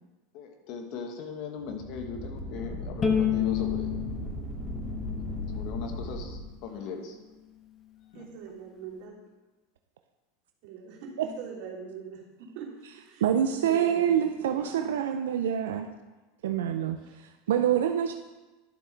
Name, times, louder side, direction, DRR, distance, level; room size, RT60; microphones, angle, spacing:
voice 1, 0.3-4.0 5.3-7.2 8.1-8.3, left 5 dB, 55° left, 4 dB, 1.5 m, -39 dB
sound 1, 1.6-6.5, left 1 dB, 5° right, 2.8 m, -37 dB
Bowed string instrument, 3.0-6.2, left 8 dB, 25° left, 1.2 m, -30 dB
voice 2, 8.1-9.2 10.6-13.2 13.5-14.9 17.1-17.2, right 5 dB, 60° right, -5 dB, 3.3 m, -42 dB
voice 3, 13.2-15.9 16.4-18.1, right 9 dB, 80° right, 6 dB, 0.5 m, -26 dB
11.5 x 7.4 x 3.4 m, 1.2 s
hypercardioid pair, 100°, 0 cm